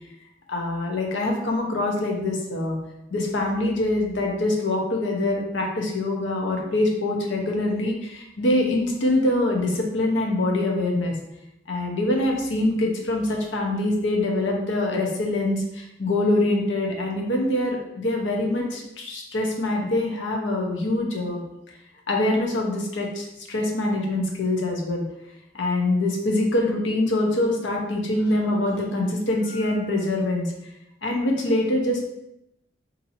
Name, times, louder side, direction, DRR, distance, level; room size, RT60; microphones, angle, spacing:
voice 1, 0.5-2.8 3.1-11.1 11.7-21.4 22.1-25.0 25.5-30.5 31.0-32.0, left 2 dB, 90° left, 0 dB, 0.7 m, -24 dB
2.7 x 2.7 x 4.1 m, 0.84 s
head